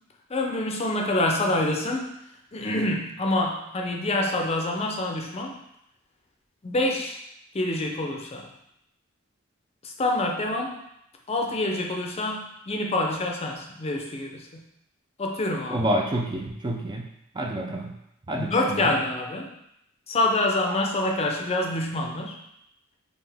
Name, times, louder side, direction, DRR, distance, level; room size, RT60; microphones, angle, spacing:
voice 1, 0.3-2.2 2.5-5.6 6.6-7.2 7.5-8.5 9.8-10.8 11.3-14.6 15.2-15.9 18.4-19.5 20.1-22.4, left 2 dB, 30° left, 1 dB, 0.5 m, -26 dB
voice 2, 15.7-17.1 17.3-17.9 18.3-18.9, right 1 dB, 20° right, 1 dB, 0.4 m, -28 dB
5.5 x 2.6 x 3.4 m, 0.79 s
head